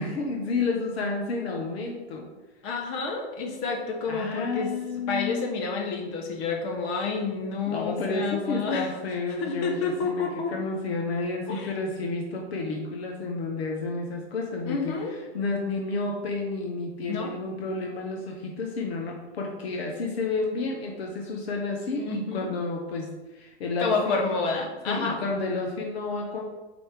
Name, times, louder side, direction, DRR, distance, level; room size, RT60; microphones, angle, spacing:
voice 1, 0.0-2.3 4.1-5.5 7.7-24.2 24.9-26.4, left 3 dB, 65° left, 1 dB, 1.1 m, -31 dB
voice 2, 2.6-4.7 5.1-8.9 9.4-10.5 11.5-11.7 14.7-15.2 17.1-17.3 21.9-22.5 23.8-25.2, left 4 dB, 45° left, 2 dB, 1.3 m, -29 dB
4.6 x 4.2 x 4.8 m, 1.1 s
hypercardioid pair, 105°, 33 cm